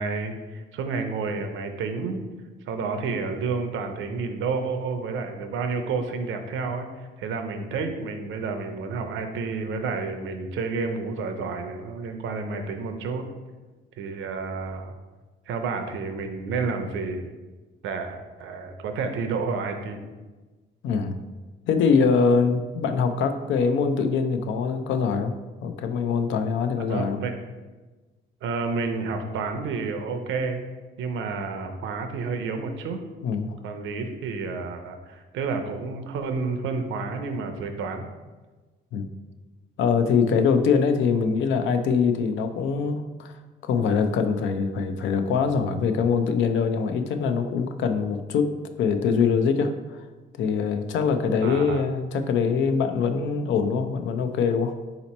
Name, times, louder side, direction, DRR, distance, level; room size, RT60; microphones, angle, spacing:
voice 1, 0.0-2.2 2.7-13.3 14.0-14.9 15.5-17.3 17.8-20.0 26.9-27.3 28.4-30.6 31.0-33.0 33.6-38.1 51.4-51.8, right 4 dB, 80° right, 6 dB, 0.5 m, -30 dB
voice 2, 20.8-21.1 21.7-25.3 25.6-27.2 33.2-33.6 38.9-39.1 39.8-43.3 43.6-50.0 50.4-54.7, left 5 dB, 75° left, 8 dB, 0.4 m, -23 dB
4.1 x 2.9 x 4.1 m, 1.2 s
cardioid pair, 90°, 20 cm